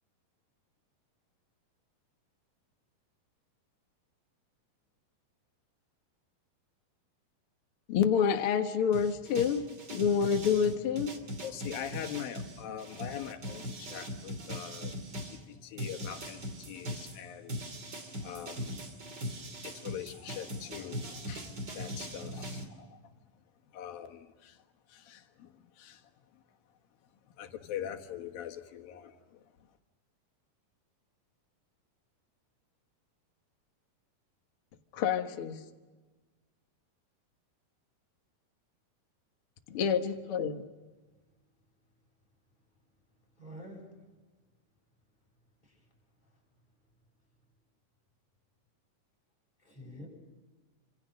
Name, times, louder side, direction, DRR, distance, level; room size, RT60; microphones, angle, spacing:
voice 1, 7.9-9.6 9.9-11.1 34.9-35.6 39.7-40.6, left 7 dB, 50° left, 6 dB, 1.8 m, -28 dB
sound 1, 8.9-15.4 15.8-22.6, equal, 30° right, 2.9 m, -40 dB
voice 2, 11.4-15.0 15.2-17.5 18.1-18.8 19.4-26.4 27.3-29.6, left 10 dB, 80° left, 5 dB, 3.3 m, -43 dB
voice 3, 43.3-43.9 45.6-45.9 46.2-46.4 49.6-50.1, equal, 10° left, -1 dB, 6.9 m, -48 dB
27.5 x 26.5 x 6.5 m, 1.3 s
omnidirectional pair, 4.0 m